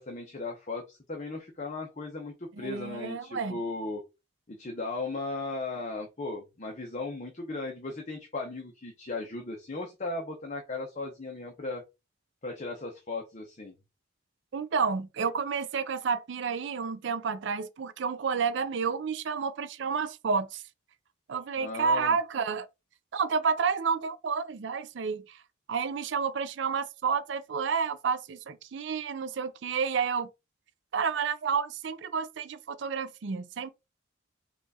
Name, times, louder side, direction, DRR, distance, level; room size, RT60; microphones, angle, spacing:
voice 1, 0.0-4.0 4.5-11.8 12.4-13.7 21.6-22.2, left 3 dB, 35° left, 0.8 m, -36 dB
voice 2, 2.6-3.6 14.5-20.6 21.3-22.7 23.1-25.4 25.7-30.3 30.9-33.7, right 5 dB, 60° right, 0.4 m, -30 dB
4.6 x 2.4 x 4.1 m
head